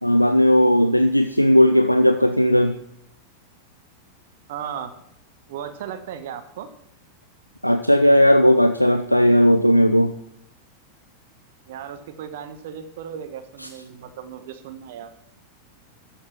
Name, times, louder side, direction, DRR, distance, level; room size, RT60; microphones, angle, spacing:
voice 1, 0.0-2.8 7.6-10.1, equal, 90° left, 9 dB, 0.5 m, -16 dB
voice 2, 4.5-4.9 5.5-6.7 11.7-15.1, right 8 dB, 55° right, 9 dB, 1.1 m, -36 dB
12.0 x 7.3 x 5.9 m, 0.75 s
figure-of-eight pair, 90°, 0 cm